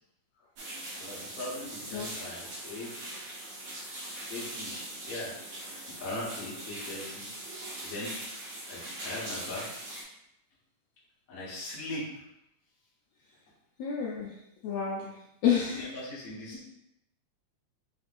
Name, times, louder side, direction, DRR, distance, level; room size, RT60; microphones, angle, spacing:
sound 1, 0.6-10.0, right 1 dB, 60° right, 1.9 m, -41 dB
voice 1, 1.0-2.9 4.3-5.4 6.0-7.3 7.8-8.1 8.7-9.7 11.3-12.0 15.5-16.7, left 2 dB, 40° left, -7 dB, 1.3 m, -39 dB
voice 2, 13.8-14.3 14.6-15.2 15.4-15.9, left 8 dB, 75° left, -4 dB, 1.6 m, -29 dB
5.3 x 3.3 x 2.5 m, 0.81 s
omnidirectional pair, 3.3 m